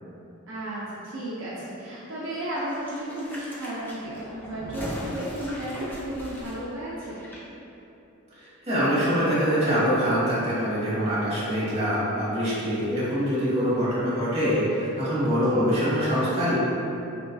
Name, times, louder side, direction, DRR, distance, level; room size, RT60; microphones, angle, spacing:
voice 1, 0.5-7.2 15.5-15.6, right 1 dB, 60° right, -9 dB, 0.5 m, -34 dB
sound 1, 2.5-7.4 7.7-7.8, equal, 10° left, 0.4 m, -38 dB
voice 2, 8.4-16.5, equal, 30° right, -10 dB, 1.1 m, -24 dB
3.0 x 3.0 x 2.5 m, 2.8 s
head